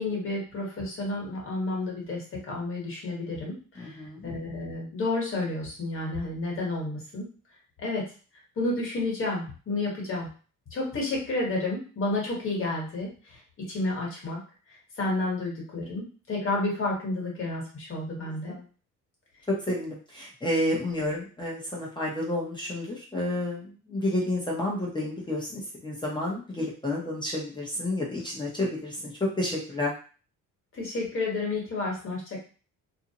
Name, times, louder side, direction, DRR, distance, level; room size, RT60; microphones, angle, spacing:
voice 1, 0.0-7.3 7.8-8.0 8.6-10.3 10.7-13.4 13.7-14.4 14.7-18.5 30.7-32.4, left 2 dB, 40° left, -3 dB, 1.2 m, -31 dB
voice 2, 3.8-4.3 18.5-18.6 19.5-29.9, left 1 dB, 15° left, -4 dB, 0.6 m, -30 dB
2.6 x 2.0 x 2.7 m, 0.38 s
cardioid pair, 145°, 33 cm